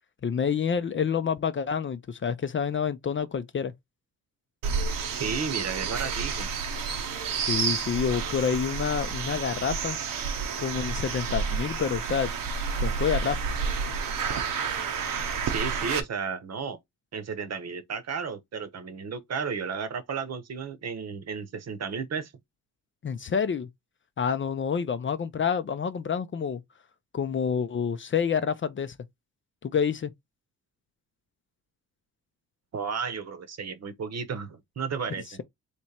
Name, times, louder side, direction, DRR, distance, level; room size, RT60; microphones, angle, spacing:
voice 1, 0.2-3.7 7.5-10.0 10.6-12.3 12.8-13.4 23.0-23.7 24.2-26.6 27.1-28.9 29.6-30.1, left 7 dB, 35° left, 0.5 m, -28 dB
sound 1, 4.6-16.0, right 5 dB, 80° right, 1.0 m, -30 dB
voice 2, 5.2-6.5 15.5-16.8 17.1-22.3 32.7-35.4, right 6 dB, 50° right, 1.0 m, -33 dB
3.4 x 3.0 x 4.2 m
cardioid pair, 90°, 33 cm